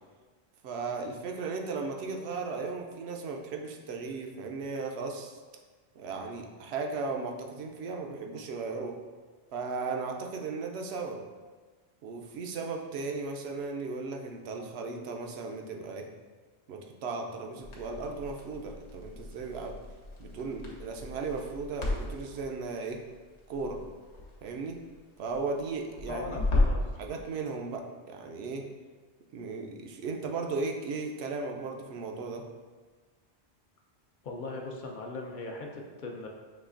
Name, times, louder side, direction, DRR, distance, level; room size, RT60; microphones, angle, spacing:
voice 1, 0.6-5.4 5.9-9.0 9.5-11.2 12.0-16.1 16.7-19.8 20.2-23.0 23.5-23.8 24.4-24.8 25.2-26.4 27.0-28.6 29.3-32.4, right 4 dB, 70° right, 2 dB, 0.8 m, -36 dB
Crackle, 17.6-26.9, left 2 dB, 90° left, 1.1 m, -34 dB
voice 2, 26.1-26.8 34.2-36.3, left 2 dB, 55° left, 1 dB, 0.6 m, -39 dB
5.8 x 3.1 x 2.5 m, 1.4 s
omnidirectional pair, 1.1 m